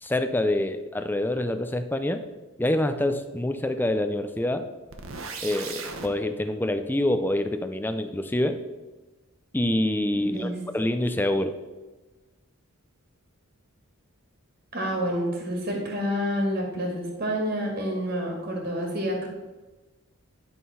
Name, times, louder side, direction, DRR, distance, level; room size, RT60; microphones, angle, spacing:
voice 1, 0.0-2.2 2.6-4.7 5.4-8.6 9.5-11.6, left 1 dB, 10° left, 8 dB, 0.4 m, -26 dB
sound 1, 4.9-6.1, right 4 dB, 65° right, 1.0 m, -36 dB
voice 2, 10.2-10.6 14.7-19.3, equal, 40° right, 0 dB, 1.8 m, -28 dB
11.0 x 3.8 x 5.6 m, 1.2 s
head